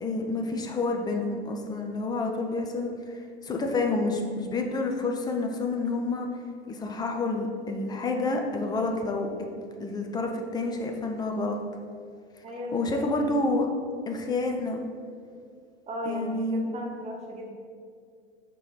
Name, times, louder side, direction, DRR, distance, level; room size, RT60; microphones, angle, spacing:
voice 1, 0.0-6.3 6.7-9.3 9.8-11.6 12.7-13.7 14.1-14.8 16.1-16.7, left 3 dB, 10° left, 2 dB, 0.5 m, -29 dB
voice 2, 12.4-13.0 15.9-17.5, equal, 20° right, 0 dB, 0.8 m, -36 dB
5.0 x 3.7 x 5.6 m, 2.2 s
figure-of-eight pair, 90°, 33 cm